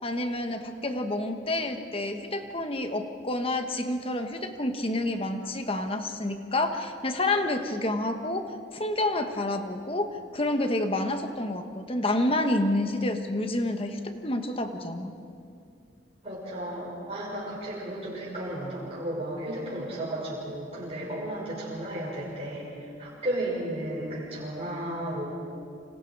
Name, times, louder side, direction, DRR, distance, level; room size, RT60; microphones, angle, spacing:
voice 1, 0.0-15.1, left 1 dB, 30° left, 6 dB, 1.4 m, -29 dB
voice 2, 16.2-25.2, right 1 dB, 30° right, -7 dB, 6.5 m, -34 dB
29.0 x 26.5 x 4.9 m, 2.5 s
head